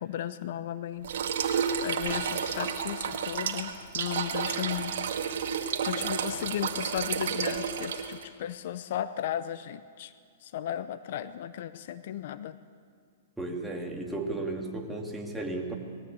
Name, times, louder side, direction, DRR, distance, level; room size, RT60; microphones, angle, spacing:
voice 1, 0.0-5.0 5.6-10.1 10.4-12.6, left 11 dB, 60° left, 13 dB, 0.7 m, -35 dB
sound 1, 1.0-8.2, right 7 dB, 70° right, 2.0 m, -31 dB
voice 2, 13.4-15.8, right 2 dB, 5° right, 0 dB, 2.5 m, -34 dB
20.5 x 15.0 x 8.7 m, 2.2 s
hypercardioid pair, 140°, 0 cm